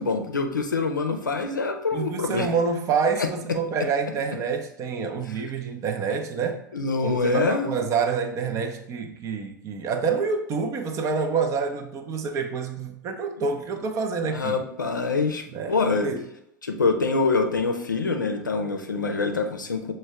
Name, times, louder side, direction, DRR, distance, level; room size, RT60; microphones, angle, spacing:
voice 1, 0.0-2.5 3.2-3.3 6.7-7.7 14.3-16.1 16.6-19.9, left 4 dB, 80° left, 0.5 m, -25 dB
voice 2, 1.9-6.6 7.0-14.6 15.5-15.8 16.0-16.2, right 5 dB, 30° right, 0.6 m, -27 dB
6.1 x 2.2 x 3.3 m
figure-of-eight pair, 90°, 10 cm